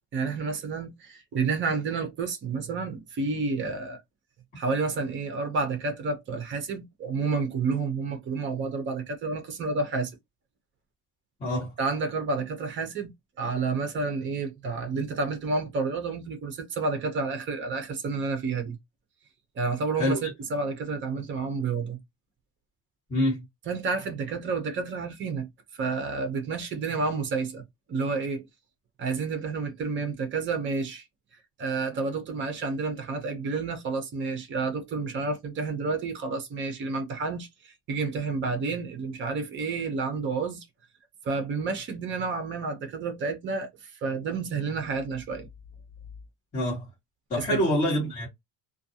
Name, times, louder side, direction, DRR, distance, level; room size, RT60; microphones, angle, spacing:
voice 1, 0.1-4.0 4.6-10.1 11.8-18.8 19.6-22.0 23.7-25.5 25.8-27.6 27.9-28.5 29.0-31.0 31.6-40.6 41.2-45.5 47.5-47.6, right 4 dB, 30° right, 0.6 m, -30 dB
voice 2, 11.4-11.7 20.0-20.2 23.1-23.4 46.5-46.9 47.3-48.3, left 1 dB, 20° left, 1.4 m, -26 dB
2.5 x 2.3 x 2.7 m
cardioid pair, 165°, 41 cm